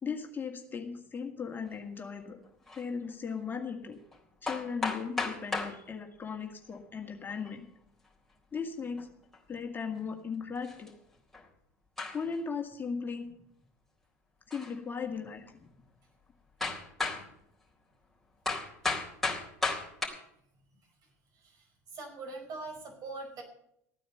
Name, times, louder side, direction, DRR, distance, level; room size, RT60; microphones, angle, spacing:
voice 1, 0.0-2.4 2.7-4.0 4.4-7.7 8.5-9.1 9.5-10.9 12.1-13.3 14.5-15.7, left 5 dB, 25° left, 3 dB, 2.0 m, -37 dB
sound 1, 2.7-2.8 4.1-4.2 4.5-5.8 7.1-7.5 9.0-9.1 9.3-9.4 10.6-10.9 11.3-11.5 12.0-12.4 14.5-14.8 15.4-15.5 16.6-17.3 18.5-20.1, left 3 dB, 5° left, 3.8 m, -34 dB
voice 2, 21.3-21.7 21.9-23.4, right 3 dB, 50° right, 2 dB, 5.2 m, -42 dB
14.5 x 9.2 x 6.7 m, 0.73 s
hypercardioid pair, 80°, 8 cm